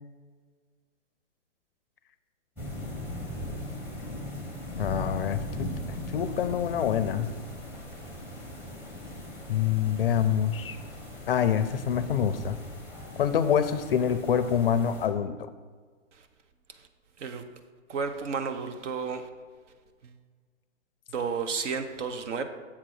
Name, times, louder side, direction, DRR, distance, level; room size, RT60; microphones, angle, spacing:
sound 1, 2.6-15.1, left 1 dB, 5° right, 0.9 m, -39 dB
voice 1, 4.8-5.7 6.1-7.3 9.5-10.8 11.3-12.6 13.2-15.3, left 8 dB, 50° left, 11 dB, 0.4 m, -26 dB
voice 2, 17.9-19.2 21.1-22.4, right 5 dB, 65° right, 8 dB, 0.9 m, -31 dB
7.4 x 3.8 x 6.4 m, 1.5 s
hypercardioid pair, 150°, 39 cm